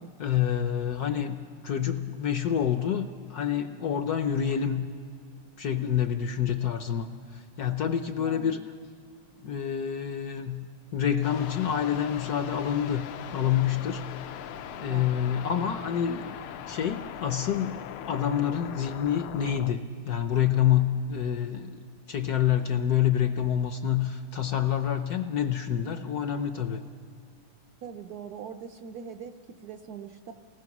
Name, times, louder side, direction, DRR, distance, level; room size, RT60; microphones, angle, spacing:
voice 1, 0.2-1.4 1.6-4.9 5.6-7.1 7.3-8.6 9.4-10.7 10.9-13.1 13.3-14.0 14.8-16.4 16.7-21.8 22.1-26.8, left 9 dB, 65° left, 8 dB, 1.0 m, -27 dB
voice 2, 8.2-8.7 14.7-15.4 27.8-30.3, right 6 dB, 65° right, 7 dB, 1.0 m, -42 dB
sound 1, 11.2-19.7, left 10 dB, 85° left, 1.6 m, -40 dB
29.0 x 19.5 x 6.0 m, 2.4 s
omnidirectional pair, 2.3 m